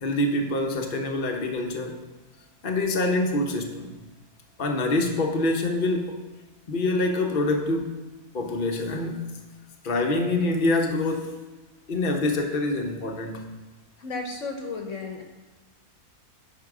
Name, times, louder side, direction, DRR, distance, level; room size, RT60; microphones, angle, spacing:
voice 1, 0.0-2.0 2.6-3.9 4.6-6.2 6.7-8.0 8.3-9.2 9.8-11.4 11.9-13.5, left 2 dB, 40° left, 3 dB, 1.0 m, -25 dB
voice 2, 14.0-15.2, left 3 dB, 55° left, 3 dB, 1.2 m, -33 dB
9.8 x 5.7 x 4.9 m, 1.2 s
omnidirectional pair, 1.6 m